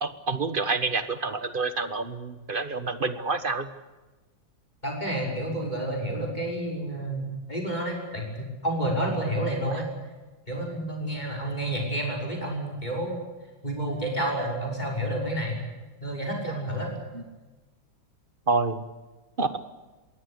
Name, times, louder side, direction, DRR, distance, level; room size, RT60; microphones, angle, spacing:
voice 1, 0.0-3.7 17.1-17.2 18.5-18.8 19.4-19.5, right 3 dB, 30° right, 12 dB, 1.4 m, -28 dB
voice 2, 4.8-8.3 8.6-9.8 10.5-13.2 13.6-15.6 16.0-16.9, right 1 dB, 20° left, 1 dB, 6.2 m, -29 dB
21.5 x 17.5 x 9.8 m, 1.2 s
omnidirectional pair, 2.0 m